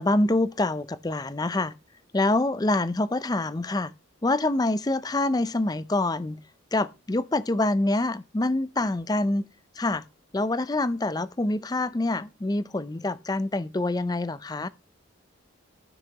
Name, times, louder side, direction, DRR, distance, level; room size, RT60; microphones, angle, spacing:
voice 1, 0.0-1.7 2.1-3.9 4.2-6.4 6.7-9.4 9.8-10.0 10.3-14.7, left 2 dB, 20° left, 0.4 m, -26 dB
13.0 x 6.4 x 2.9 m
head